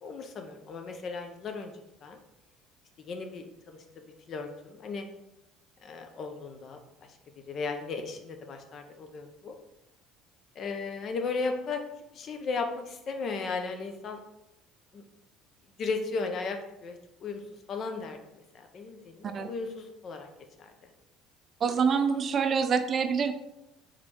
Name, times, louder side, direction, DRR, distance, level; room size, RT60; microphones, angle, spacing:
voice 1, 0.0-1.7 2.0-2.2 3.1-5.0 5.8-6.8 7.5-9.5 10.6-11.8 12.1-14.2 14.9-15.0 15.8-17.4 17.7-20.3 20.6-20.7, left 4 dB, 50° left, 5 dB, 0.5 m, -36 dB
voice 2, 21.6-23.3, right 6 dB, 45° right, 9 dB, 0.4 m, -26 dB
3.9 x 3.1 x 2.9 m, 0.90 s
supercardioid pair, 100°, 0 cm